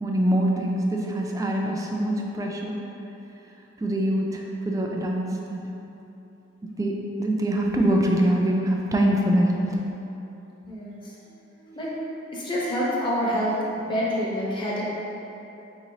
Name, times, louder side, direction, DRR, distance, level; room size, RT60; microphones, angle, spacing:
voice 1, 0.0-2.8 3.8-5.7 6.8-9.7, right 1 dB, 20° right, 0 dB, 0.3 m, -24 dB
voice 2, 10.6-11.1 11.5-14.8, equal, 25° left, -6 dB, 0.7 m, -28 dB
4.6 x 3.0 x 2.7 m, 2.9 s
head